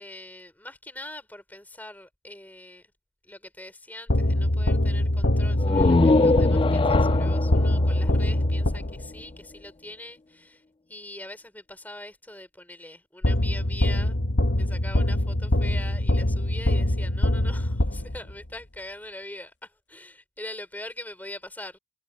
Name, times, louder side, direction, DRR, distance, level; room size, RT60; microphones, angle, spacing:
voice 1, 0.0-2.9 3.2-10.6 10.9-14.2 14.6-21.8, left 1 dB, 10° left, 3.9 m, -42 dB
sound 1, 4.1-9.2 13.2-18.4, left 1 dB, 70° left, 1.4 m, -23 dB
sound 2, 5.6-9.2, left 3 dB, 25° left, 0.3 m, -23 dB
head